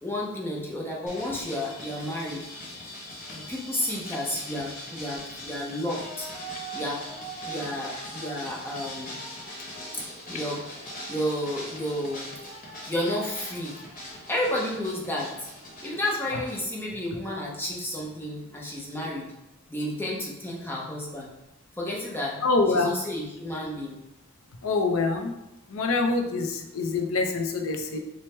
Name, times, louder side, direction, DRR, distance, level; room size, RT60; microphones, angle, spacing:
voice 1, 0.0-2.4 3.3-6.3 6.7-7.0 7.4-9.2 10.3-10.6 11.1-12.4 12.8-13.8 14.3-15.5 15.8-19.3 19.7-21.3 21.8-22.4 22.7-24.0, left 1 dB, 10° left, -4 dB, 0.6 m, -31 dB
sound 1, 1.1-16.6, equal, 40° left, 1.0 m, -41 dB
voice 2, 22.4-22.9 24.6-25.3 25.7-28.0, left 3 dB, 85° left, 4 dB, 0.5 m, -25 dB
4.5 x 2.1 x 3.2 m, 0.91 s
head